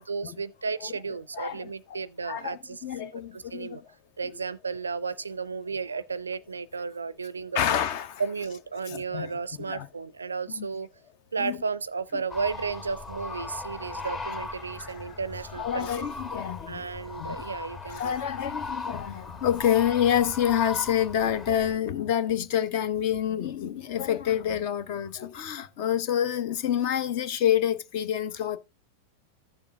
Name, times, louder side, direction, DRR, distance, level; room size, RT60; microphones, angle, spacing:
voice 1, 0.0-2.8 3.3-3.8 4.2-7.6 8.2-10.9 11.3-16.1 16.7-18.2, right 5 dB, 75° right, 0.4 m, -33 dB
voice 2, 1.3-2.0 2.2-3.8 7.5-8.2 8.9-9.3 9.7-9.9 10.5-10.7 11.4-11.6 14.8-14.9 15.6-16.9 17.2-17.4 17.9-28.6, left 10 dB, 45° left, 0.8 m, -27 dB
sound 1, 12.3-21.7, left 4 dB, 25° left, 1.4 m, -38 dB
14.0 x 6.9 x 2.3 m
figure-of-eight pair, 90°, 0 cm